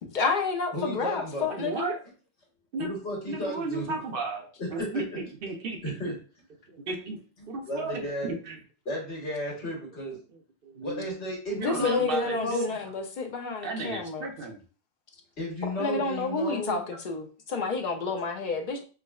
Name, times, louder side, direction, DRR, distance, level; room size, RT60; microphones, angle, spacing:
voice 1, 0.0-1.9 11.6-14.3 15.6-18.8, left 4 dB, 55° left, 0.6 m, -30 dB
voice 2, 0.7-1.5 2.8-4.0 4.6-5.0 5.8-6.1 7.6-8.3 8.8-10.2 10.8-12.7 15.4-16.8, left 1 dB, 85° left, 1.5 m, -33 dB
voice 3, 1.5-2.0 2.7-2.9 3.3-5.8 6.7-7.2 7.5-8.6 10.3-11.1 11.5-12.4 13.6-14.6, right 3 dB, 60° right, 0.8 m, -34 dB
4.7 x 2.0 x 2.3 m
omnidirectional pair, 1.1 m